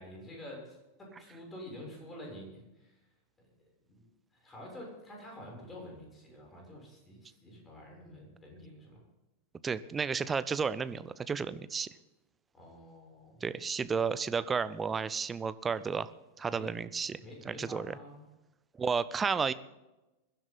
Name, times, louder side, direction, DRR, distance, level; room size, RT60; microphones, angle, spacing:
voice 1, 0.0-3.0 3.4-4.0 4.3-9.0 12.5-13.4 16.5-16.7 17.2-18.2, left 1 dB, 15° left, -1 dB, 7.1 m, -48 dB
voice 2, 9.6-11.9 13.4-16.1 16.4-17.2 17.4-18.0 18.8-19.5, right 5 dB, 15° right, 15 dB, 0.7 m, -32 dB
21.5 x 12.0 x 4.0 m, 1.0 s
figure-of-eight pair, 90°, 0 cm